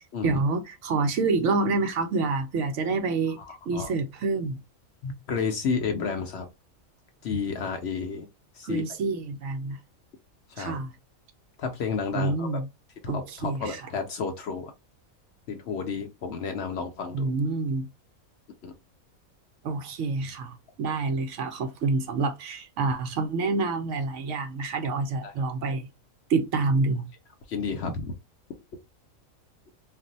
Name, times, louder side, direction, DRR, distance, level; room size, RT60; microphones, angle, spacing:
voice 1, 0.2-3.4 3.7-4.6 8.6-9.8 10.6-10.9 12.1-12.7 13.1-13.8 17.1-17.9 19.6-25.9 26.3-27.1, right 3 dB, 70° right, 0.8 m, -27 dB
voice 2, 3.4-3.9 5.0-6.5 7.2-8.3 8.5-8.8 10.5-10.8 11.6-12.5 13.0-14.7 15.5-17.3 18.6-18.7 25.2-25.3 27.5-28.1, left 5 dB, 65° left, 0.7 m, -31 dB
2.5 x 2.0 x 3.8 m
omnidirectional pair, 1.4 m